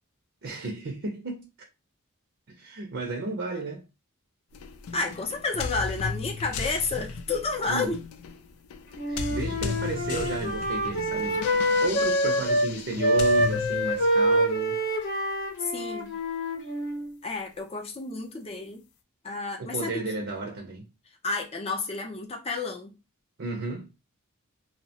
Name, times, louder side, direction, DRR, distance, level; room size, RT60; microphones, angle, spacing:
voice 1, 0.4-1.5 2.5-3.8 4.9-5.1 7.7-8.0 9.1-11.5 11.8-14.8 19.6-20.9 23.4-23.9, right 3 dB, 55° right, 0.6 m, -33 dB
sound 1, 4.5-14.4, left 5 dB, 80° left, 0.4 m, -36 dB
voice 2, 4.9-8.0 15.6-16.1 17.2-18.8 19.2-20.0 21.2-22.9, left 3 dB, 30° left, 0.6 m, -30 dB
Wind instrument woodwind instrument, 9.0-12.7 13.0-17.1, equal, 60° left, 0.8 m, -26 dB
2.7 x 2.1 x 2.8 m
head